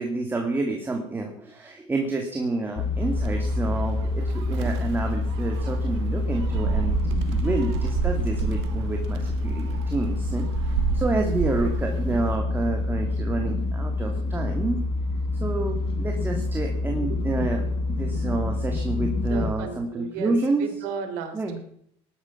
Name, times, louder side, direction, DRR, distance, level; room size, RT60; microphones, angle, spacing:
voice 1, 0.0-14.8 15.4-20.7 21.3-21.6, right 2 dB, 15° right, 2 dB, 2.2 m, -29 dB
sound 1, 2.8-19.5, left 2 dB, 45° left, 1.6 m, -27 dB
Gull seagull, 3.0-12.4, right 9 dB, 85° right, 1.6 m, -31 dB
voice 2, 16.9-17.2 19.3-21.6, right 7 dB, 70° right, 6 dB, 3.3 m, -35 dB
18.0 x 11.5 x 5.9 m, 0.68 s
supercardioid pair, 125°, 14 cm